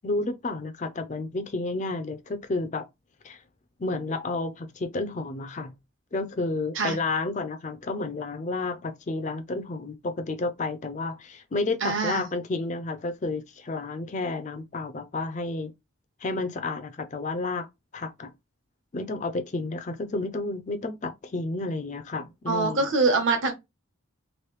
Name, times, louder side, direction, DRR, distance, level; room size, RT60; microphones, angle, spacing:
voice 1, 0.0-2.8 3.2-3.4 3.8-5.7 6.1-15.7 16.2-17.7 17.9-18.3 18.9-22.9, left 3 dB, 35° left, 0.4 m, -31 dB
voice 2, 11.8-12.3 22.5-23.5, right 3 dB, 60° right, 1.0 m, -24 dB
3.1 x 2.6 x 3.1 m
head